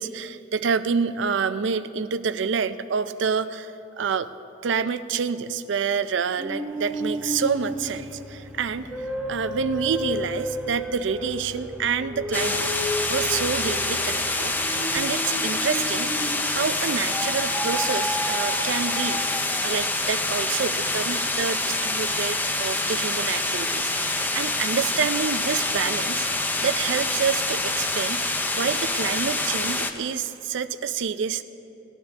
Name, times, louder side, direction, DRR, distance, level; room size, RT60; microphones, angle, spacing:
voice 1, 0.0-4.3 4.6-12.7 13.1-14.5 14.9-16.1 16.5-19.2 19.6-26.3 26.6-28.2 28.5-31.4, right 6 dB, 65° right, 13 dB, 0.4 m, -28 dB
sound 1, 6.4-16.6 17.1-19.9, equal, 5° right, 1.0 m, -32 dB
sound 2, 12.3-29.9, left 2 dB, 10° left, 0.5 m, -26 dB
19.0 x 12.0 x 3.5 m, 2.9 s
head